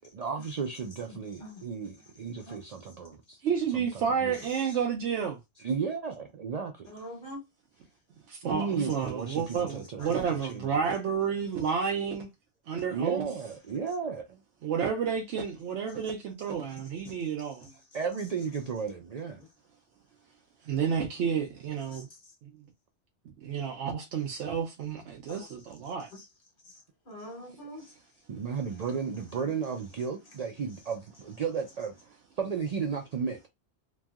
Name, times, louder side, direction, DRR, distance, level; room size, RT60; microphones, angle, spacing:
voice 1, 0.1-3.4 3.7-3.9 4.2-4.3 4.6-4.8 5.6-6.9 8.4-10.9 12.9-14.4 17.9-19.4 28.3-31.9 32.4-33.5, right 6 dB, 65° right, 0.4 m, -34 dB
voice 2, 1.1-1.6 2.5-2.6 6.9-7.4 8.7-8.9 10.0-10.1 16.4-16.6 17.0-17.1 17.6-17.8 19.4-19.5 21.9-22.2 25.3-25.5 26.1-26.3 26.6-27.9, left 1 dB, 50° left, 1.3 m, -45 dB
voice 3, 3.4-5.4 8.3-12.3 12.7-13.3 14.6-17.7 20.6-22.1 22.4-22.5 23.4-26.1, right 7 dB, 90° right, 0.9 m, -30 dB
3.0 x 2.6 x 2.3 m
omnidirectional pair, 1.2 m